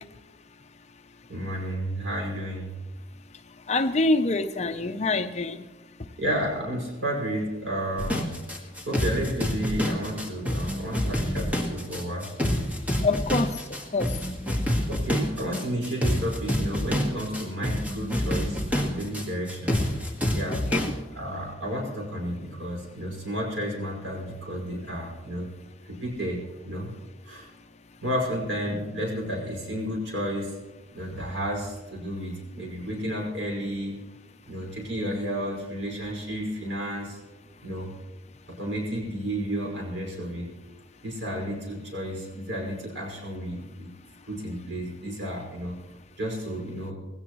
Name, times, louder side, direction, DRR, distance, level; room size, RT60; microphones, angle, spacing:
voice 1, 1.3-2.7 6.2-8.3 8.9-12.3 14.9-19.8 20.3-20.6 21.1-25.5 25.9-26.9 27.3-27.5 28.0-30.5 30.9-34.0 34.5-37.2 37.6-37.9 38.6-40.6 41.0-43.9 44.3-45.7 46.2-46.9, equal, 85° right, -2 dB, 5.5 m, -32 dB
voice 2, 3.7-5.6 13.0-13.5 13.9-14.1 20.4-20.8, left 2 dB, 35° left, 8 dB, 0.7 m, -25 dB
sound 1, 8.0-21.0, equal, 10° right, 1.7 m, -27 dB
20.0 x 17.0 x 3.1 m, 1.2 s
head